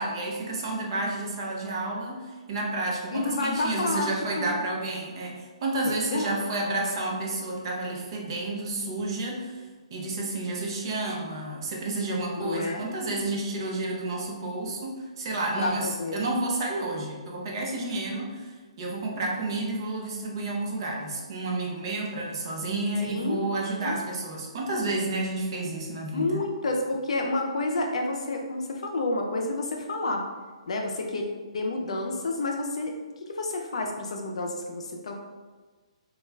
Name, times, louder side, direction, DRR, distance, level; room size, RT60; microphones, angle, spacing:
voice 1, 0.0-9.6 9.9-18.5 18.8-26.4, right 2 dB, 45° right, -1 dB, 0.6 m, -30 dB
voice 2, 3.1-4.1 4.4-4.5 5.9-6.4 12.4-12.9 15.6-16.2 23.0-23.5 23.8-24.0 26.1-30.2 30.7-31.3 31.5-32.9 33.2-35.1, left 2 dB, 75° left, 1 dB, 0.4 m, -29 dB
2.3 x 2.2 x 3.1 m, 1.3 s
hypercardioid pair, 150°, 3 cm